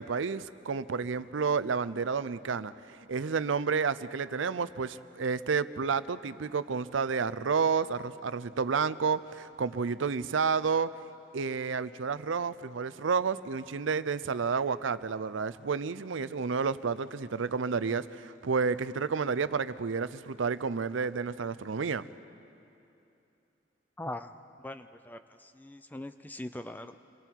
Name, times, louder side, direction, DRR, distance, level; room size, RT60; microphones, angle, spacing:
voice 1, 0.0-2.7 3.1-10.9 11.3-22.1, right 5 dB, 80° right, 15 dB, 0.5 m, -30 dB
voice 2, 24.0-24.3 24.6-27.0, left 1 dB, 10° left, 9 dB, 0.4 m, -41 dB
28.0 x 23.0 x 4.6 m, 2.8 s
head